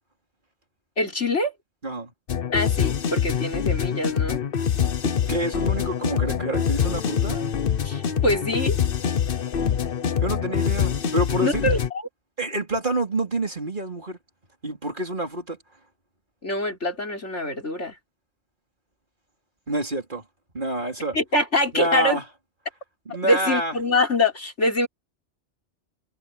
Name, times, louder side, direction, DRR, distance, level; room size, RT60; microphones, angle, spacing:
voice 1, 1.0-1.5 2.5-4.4 7.8-8.8 11.4-11.8 16.4-17.9 21.1-22.2 23.2-24.9, left 1 dB, 85° left, 5.8 m, -24 dB
sound 1, 2.3-11.9, left 8 dB, 55° left, 1.0 m, -25 dB
voice 2, 5.3-7.4 10.2-11.7 12.4-14.2 14.6-15.6 19.7-20.2 20.5-21.2 21.7-22.2 23.1-23.8, right 1 dB, 45° right, 4.1 m, -28 dB
omnidirectional pair, 1.2 m